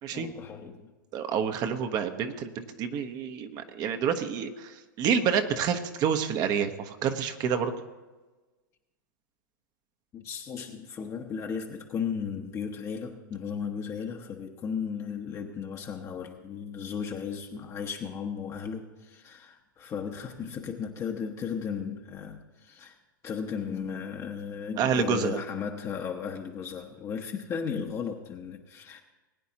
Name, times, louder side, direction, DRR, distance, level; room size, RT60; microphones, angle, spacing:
voice 1, 0.1-0.9 10.1-23.0 23.2-29.0, left 6 dB, 25° left, 2 dB, 1.0 m, -35 dB
voice 2, 1.1-7.7 24.8-25.4, right 7 dB, 35° right, 7 dB, 1.0 m, -28 dB
20.5 x 9.3 x 2.9 m, 1.2 s
hypercardioid pair, 115°, 11 cm